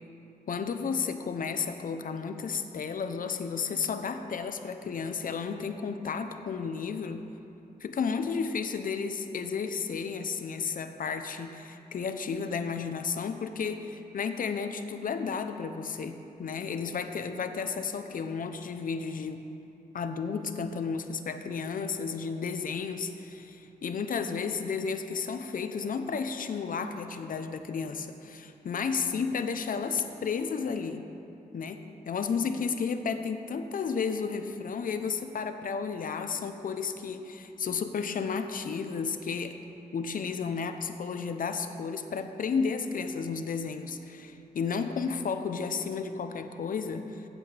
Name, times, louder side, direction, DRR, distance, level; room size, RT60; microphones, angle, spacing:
voice 1, 0.5-7.3 7.8-19.4 19.9-31.1 31.5-39.6 39.9-47.2, left 5 dB, 65° left, 8 dB, 0.6 m, -32 dB
15.0 x 8.3 x 3.3 m, 2.9 s
wide cardioid pair, 125°, 15 cm